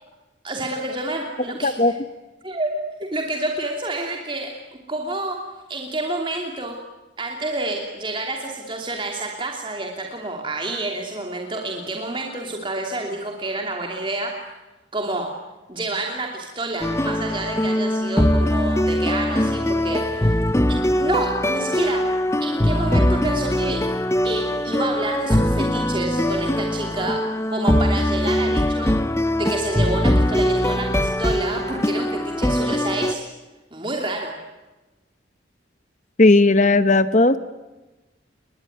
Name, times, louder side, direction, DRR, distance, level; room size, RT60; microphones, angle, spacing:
voice 1, 0.4-1.9 2.4-2.7 3.0-4.5 4.9-5.4 5.7-6.8 7.2-14.3 14.9-15.3 15.7-20.3 20.7-22.0 22.4-23.8 24.2-27.2 27.5-28.9 29.4-33.2 33.7-34.4, right 2 dB, 25° right, 1 dB, 2.9 m, -28 dB
voice 2, 1.6-1.9 36.2-37.4, left 2 dB, 40° left, 12 dB, 1.0 m, -15 dB
sound 1, 16.8-33.1, left 1 dB, 15° left, 0.9 m, -21 dB
29.5 x 21.5 x 9.4 m, 1.1 s
head